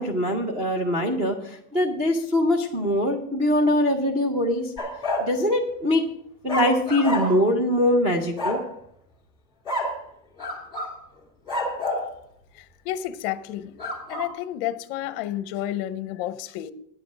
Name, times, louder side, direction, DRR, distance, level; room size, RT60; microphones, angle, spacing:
voice 1, 0.0-4.7 5.2-6.1 6.4-8.6, left 1 dB, 15° right, 0.5 m, -23 dB
sound 1, 4.8-5.3 6.5-7.5 8.4-8.7 9.7-10.0 10.4-11.0 11.5-12.1 13.8-14.3, left 1 dB, 10° left, 2.0 m, -28 dB
voice 2, 12.8-13.8 14.1-16.7, left 12 dB, 40° left, 0.6 m, -30 dB
9.4 x 7.4 x 6.1 m
supercardioid pair, 175°, 46 cm